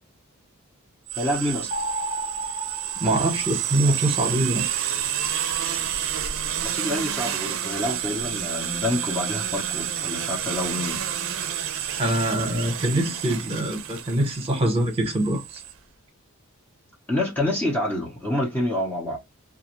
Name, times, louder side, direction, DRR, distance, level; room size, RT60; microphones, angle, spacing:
sound 1, 1.1-15.7, right 10 dB, 65° right, 0.5 m, -29 dB
voice 1, 1.2-1.7 6.6-11.0 17.1-19.2, left 1 dB, 10° left, 0.8 m, -27 dB
sound 2, 1.7-4.2, equal, 90° left, 1.1 m, -33 dB
voice 2, 3.0-4.7 12.0-15.6, right 1 dB, 25° right, 1.0 m, -24 dB
2.4 x 2.3 x 2.9 m
head